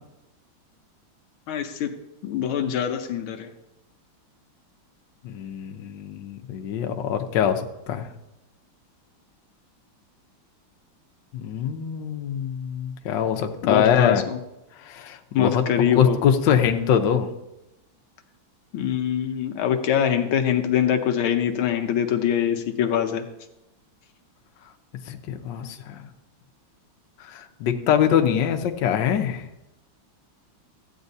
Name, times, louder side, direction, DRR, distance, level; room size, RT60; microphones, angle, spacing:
voice 1, 1.5-1.9 2.2-3.5 13.6-14.4 15.3-16.2 18.7-23.2, left 9 dB, 90° left, 5 dB, 1.6 m, -23 dB
voice 2, 5.2-8.1 11.3-14.2 14.8-15.6 15.9-17.3 25.1-26.1 27.2-29.5, left 8 dB, 70° left, 5 dB, 1.3 m, -23 dB
14.0 x 8.9 x 2.7 m, 0.91 s
omnidirectional pair, 2.3 m